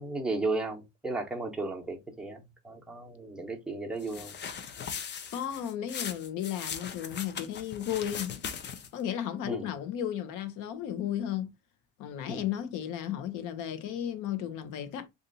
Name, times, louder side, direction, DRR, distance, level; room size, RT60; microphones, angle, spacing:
voice 1, 0.0-4.3 9.4-9.7 12.3-12.4, right 2 dB, ahead, 0.8 m, -34 dB
sound 1, 4.0-9.0, left 7 dB, 35° left, 0.6 m, -39 dB
voice 2, 5.3-8.4 8.9-11.5 12.0-15.1, left 10 dB, 65° left, 0.8 m, -34 dB
2.8 x 2.5 x 3.9 m
cardioid pair, 130°, 34 cm